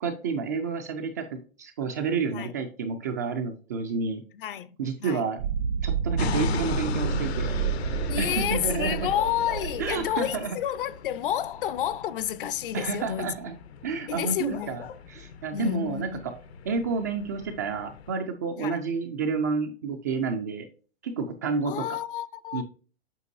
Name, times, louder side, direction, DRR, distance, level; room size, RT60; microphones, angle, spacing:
voice 1, 0.0-4.2 4.8-5.4 5.8-7.6 8.2-9.0 9.8-10.6 12.7-13.5 13.8-16.1 16.7-20.6 21.0-21.8 22.5-22.6, right 5 dB, 20° right, 0.3 m, -30 dB
voice 2, 4.3-4.7 5.0-5.3 6.5-6.6 8.1-13.3 14.1-14.8 15.5-16.2 18.6-18.8 21.7-22.6, left 10 dB, 55° left, 0.7 m, -30 dB
sound 1, 5.4-10.4, right 7 dB, 85° right, 0.8 m, -30 dB
sound 2, 6.2-18.1, left 6 dB, 75° left, 1.0 m, -38 dB
8.1 x 5.1 x 2.6 m
hypercardioid pair, 155°, 32 cm